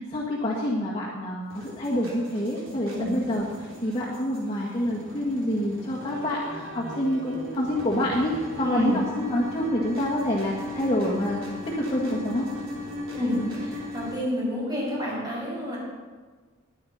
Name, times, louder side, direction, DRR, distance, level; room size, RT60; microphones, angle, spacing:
voice 1, 0.1-12.4, left 1 dB, 30° left, -6 dB, 1.8 m, -27 dB
sound 1, 1.5-14.1, left 1 dB, 80° right, 3.3 m, -37 dB
voice 2, 8.6-9.0 13.1-15.8, left 1 dB, 20° right, -5 dB, 5.2 m, -29 dB
21.0 x 9.0 x 4.3 m, 1.4 s
head